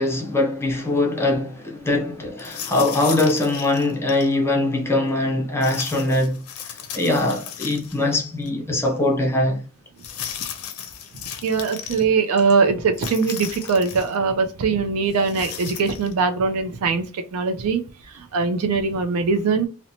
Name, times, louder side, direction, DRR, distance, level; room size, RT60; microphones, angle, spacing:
voice 1, 0.0-9.6, left 2 dB, 10° left, 0.5 m, -22 dB
sound 1, 2.4-4.3 5.6-8.2 8.5-8.6 10.0-12.0 12.9-14.2 15.1-16.1, left 9 dB, 70° left, 0.5 m, -35 dB
voice 2, 11.4-17.1 17.3-17.8 18.3-19.7, right 4 dB, 70° right, 0.4 m, -21 dB
2.8 x 2.1 x 2.6 m
head